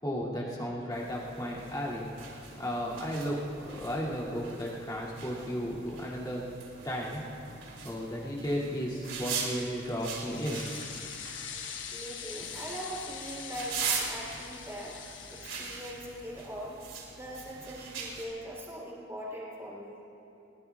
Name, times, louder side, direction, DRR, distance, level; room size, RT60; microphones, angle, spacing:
voice 1, 0.0-2.1 2.6-3.4 3.7-6.5 6.8-7.2 7.8-10.6, equal, 20° left, -6 dB, 2.6 m, -34 dB
sound 1, 0.9-18.2, right 5 dB, 85° right, 3.1 m, -41 dB
sound 2, 9.6-16.4, left 7 dB, 80° left, 1.2 m, -43 dB
voice 2, 11.9-15.0 15.3-16.8 17.1-20.0, equal, 15° right, -5 dB, 3.4 m, -41 dB
21.5 x 21.0 x 2.4 m, 2.9 s
head